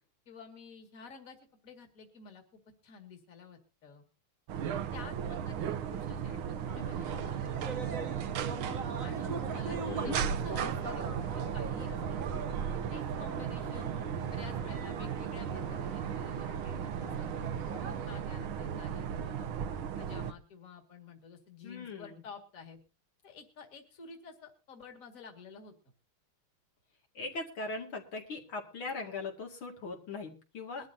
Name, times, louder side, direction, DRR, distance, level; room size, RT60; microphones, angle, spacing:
voice 1, 0.3-1.4 1.6-4.0 4.6-6.4 6.7-8.0 9.0-12.3 12.7-14.0 14.3-17.3 17.8-19.5 20.0-22.8 23.2-25.7 30.7-30.9, left 5 dB, 40° left, 4 dB, 2.5 m, -51 dB
sound 1, 4.5-20.3, right 8 dB, 75° right, 1.6 m, -36 dB
sound 2, 6.6-18.4, right 4 dB, 50° right, 1.1 m, -41 dB
voice 2, 9.8-10.4 21.6-22.2 27.1-30.9, left 3 dB, 75° left, 1 dB, 3.1 m, -40 dB
22.0 x 12.5 x 2.7 m, 0.31 s
omnidirectional pair, 2.3 m